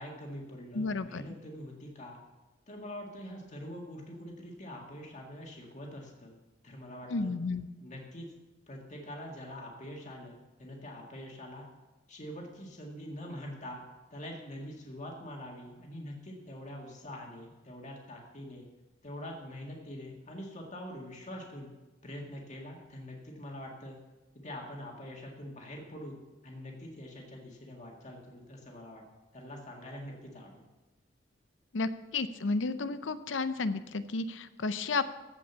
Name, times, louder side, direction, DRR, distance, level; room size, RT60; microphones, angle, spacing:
voice 1, 0.0-2.2 2.7-6.4 6.6-7.3 7.8-8.3 8.7-11.7 12.1-13.8 14.1-18.6 19.0-21.7 22.0-24.0 24.4-26.2 26.4-29.0 29.3-30.6, left 1 dB, 40° left, 0 dB, 1.9 m, -44 dB
voice 2, 0.7-1.2 7.1-7.7 31.7-35.0, left 3 dB, 85° left, 13 dB, 0.6 m, -32 dB
15.0 x 5.3 x 7.0 m, 1.1 s
head